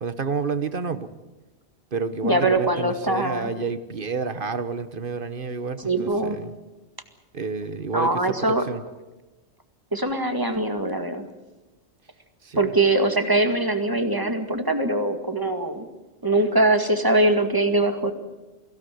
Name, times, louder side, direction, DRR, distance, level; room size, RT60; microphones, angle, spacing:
voice 1, 0.0-1.1 1.9-6.5 7.3-8.8 12.4-12.6, right 5 dB, 50° right, 12 dB, 1.3 m, -29 dB
voice 2, 2.2-3.5 5.8-6.4 7.9-8.6 9.9-11.3 12.6-15.9 16.2-18.1, right 2 dB, 20° right, 7 dB, 2.0 m, -22 dB
23.5 x 16.5 x 9.4 m, 1.1 s
omnidirectional pair, 1.2 m